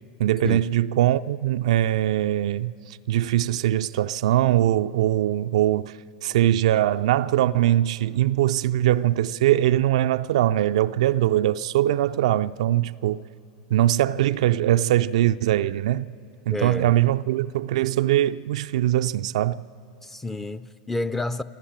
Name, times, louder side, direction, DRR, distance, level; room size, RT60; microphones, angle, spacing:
voice 1, 0.2-13.2 13.7-16.1 16.5-19.6, right 13 dB, 65° right, 0.4 m, -22 dB
voice 2, 16.5-16.9 20.0-21.4, left 2 dB, 10° left, 0.6 m, -29 dB
27.0 x 12.5 x 8.8 m
hypercardioid pair, 90°, 4 cm